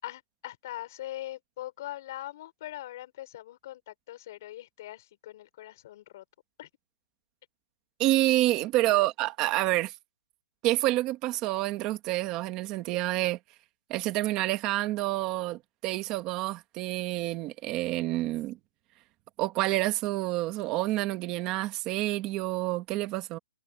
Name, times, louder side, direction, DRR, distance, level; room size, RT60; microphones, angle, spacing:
voice 1, 0.0-6.2 6.6-6.7 8.9-9.1, left 14 dB, 35° left, 5.4 m, -41 dB
voice 2, 8.0-9.9 10.6-13.4 13.9-18.6 19.4-23.4, right 17 dB, 15° right, 1.5 m, -28 dB
hypercardioid pair, 180°, 3 cm